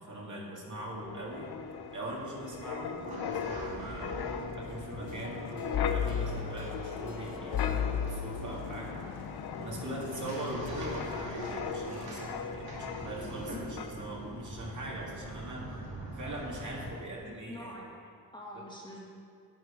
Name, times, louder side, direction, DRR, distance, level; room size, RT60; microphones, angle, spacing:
voice 1, 0.0-1.5 1.9-9.1 9.6-15.7 16.1-17.8 18.5-18.6, right 1 dB, 50° right, -3 dB, 2.4 m, -41 dB
sound 1, 0.7-16.9, right 1 dB, 75° right, 3.2 m, -44 dB
Wind, 1.1-13.5 13.8-14.0, left 7 dB, 85° left, 0.6 m, -37 dB
sound 2, 5.1-9.6 10.1-13.2, right 1 dB, 60° left, 3.1 m, -51 dB
voice 2, 13.5-13.8 17.2-19.1, left 1 dB, 10° left, -4 dB, 1.7 m, -45 dB
10.5 x 9.3 x 5.1 m, 2.2 s
wide cardioid pair, 125°, 37 cm